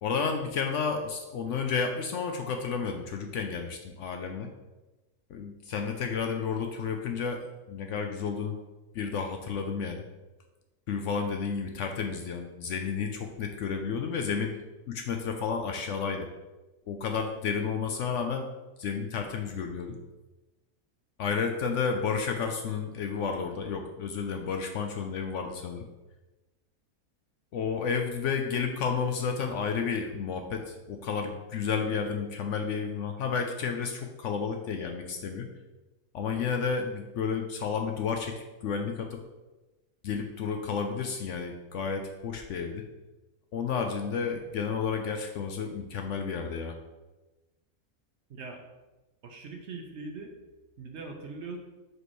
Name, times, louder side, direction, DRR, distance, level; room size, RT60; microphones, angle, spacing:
voice 1, 0.0-4.5 5.3-8.6 8.9-10.0 10.9-14.5 14.9-16.3 16.9-18.5 18.8-19.9 21.2-25.9 27.5-35.5 36.1-38.4 38.6-39.2 40.0-42.8 43.5-46.8, left 6 dB, 65° left, 5 dB, 0.8 m, -31 dB
voice 2, 48.3-48.6 49.2-50.3 50.8-51.6, right 3 dB, 55° right, 2 dB, 0.9 m, -41 dB
6.2 x 5.2 x 3.1 m, 1.1 s
omnidirectional pair, 1.5 m